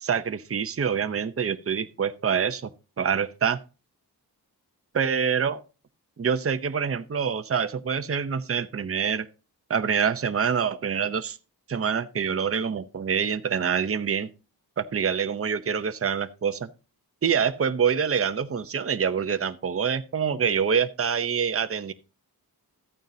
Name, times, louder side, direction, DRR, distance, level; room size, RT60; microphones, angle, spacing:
voice 1, 0.0-2.7 3.0-3.6 4.9-5.6 6.2-9.3 9.7-11.4 11.7-14.3 14.8-16.7 17.2-21.9, right 7 dB, 35° right, 10 dB, 0.7 m, -26 dB
13.5 x 9.1 x 2.7 m, 0.32 s
wide cardioid pair, 100°, 39 cm